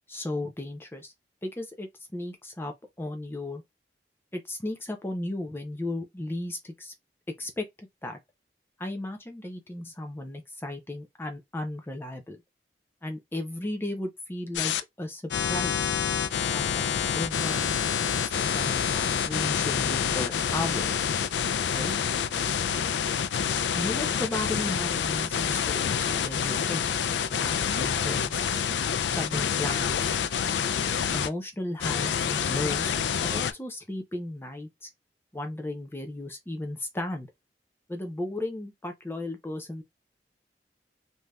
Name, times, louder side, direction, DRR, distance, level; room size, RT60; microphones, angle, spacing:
voice 1, 0.1-1.1 1.4-3.6 4.3-6.9 7.4-7.7 8.0-8.2 8.8-12.4 13.0-15.9 16.5-18.2 18.5-21.0 21.7-21.9 23.8-26.9 27.3-28.4 29.1-30.1 31.1-32.9 33.2-34.9 35.3-37.3 37.9-39.8, left 1 dB, 15° left, 0.6 m, -35 dB
sound 1, 14.5-14.8 15.3-31.3 31.8-33.5, left 7 dB, 85° left, 0.4 m, -27 dB
3.3 x 2.7 x 2.2 m
head